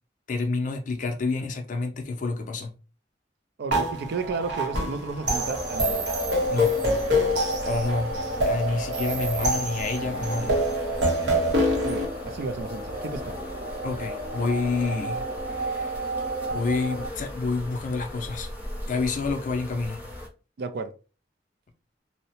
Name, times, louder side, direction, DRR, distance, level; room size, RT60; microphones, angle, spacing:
voice 1, 0.3-2.8 6.5-7.0 7.7-8.2 8.4-10.6 13.8-16.1 16.5-18.5 18.9-20.0, left 3 dB, 45° left, 0.4 m, -29 dB
voice 2, 3.6-6.1 11.8-13.4 20.6-20.9, right 4 dB, 60° right, 0.4 m, -33 dB
sound 1, 3.7-12.1, equal, 80° right, 0.9 m, -26 dB
sound 2, 5.3-20.3, left 1 dB, 10° right, 0.8 m, -39 dB
sound 3, 5.4-17.1, right 2 dB, 45° right, 0.8 m, -34 dB
2.7 x 2.0 x 2.8 m
head